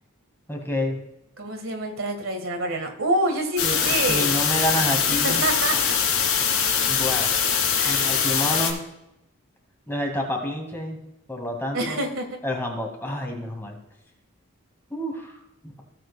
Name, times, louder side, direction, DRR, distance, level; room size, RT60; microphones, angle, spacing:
voice 1, 0.5-1.0 3.6-3.8 4.1-5.4 6.9-7.3 7.8-8.8 9.9-11.0 11.3-12.0 12.4-13.8 14.9-15.4, left 1 dB, 10° left, 1 dB, 2.2 m, -28 dB
voice 2, 1.4-4.3 5.1-5.9 7.8-8.3 11.7-12.3, right 2 dB, 70° right, 4 dB, 1.8 m, -27 dB
sound 1, 3.6-8.7, left 7 dB, 85° left, 2.4 m, -22 dB
16.5 x 7.7 x 2.3 m, 0.87 s
head